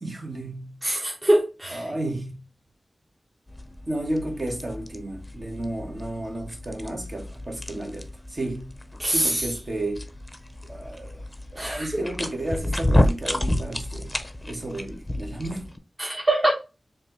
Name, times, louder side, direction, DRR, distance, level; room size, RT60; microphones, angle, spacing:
voice 1, 0.0-0.8 1.7-2.4 3.9-8.7 9.1-10.1 10.6-11.2 11.5-14.2 14.5-15.7, right 1 dB, 50° right, 1.3 m, -32 dB
voice 2, 0.8-1.9 9.0-9.5 11.6-12.0 16.0-16.5, right 1 dB, 30° right, 1.0 m, -23 dB
sound 1, 3.5-15.8, left 1 dB, 20° left, 0.6 m, -30 dB
4.2 x 2.9 x 3.1 m
wide cardioid pair, 55°, 0 cm